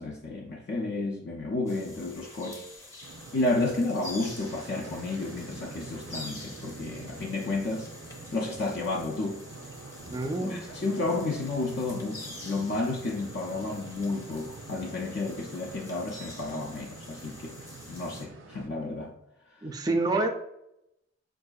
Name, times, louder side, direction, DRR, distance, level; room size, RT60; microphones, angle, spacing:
voice 1, 0.0-2.6 3.3-7.9 8.3-9.4 10.4-17.6 17.9-19.1, left 2 dB, 60° left, 0.4 m, -31 dB
sound 1, 1.7-18.3, left 2 dB, 15° left, 0.8 m, -47 dB
sound 2, 3.0-18.7, right 3 dB, 80° right, 0.5 m, -46 dB
voice 2, 10.1-10.6 19.6-20.3, right 2 dB, 20° right, 0.3 m, -27 dB
4.7 x 2.6 x 2.3 m
head